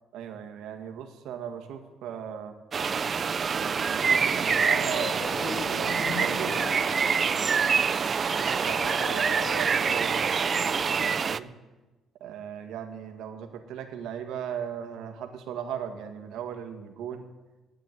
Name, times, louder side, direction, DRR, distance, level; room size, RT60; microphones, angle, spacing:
voice 1, 0.1-2.5 3.5-7.8 8.2-11.5 12.2-17.3, right 8 dB, 85° right, 5 dB, 1.8 m, -38 dB
sound 1, 2.7-11.4, right 6 dB, 30° right, 0.4 m, -26 dB
sound 2, 3.8-11.1, left 6 dB, 85° left, 1.3 m, -40 dB
12.0 x 9.1 x 9.4 m, 1.2 s
cardioid pair, 160°, 0 cm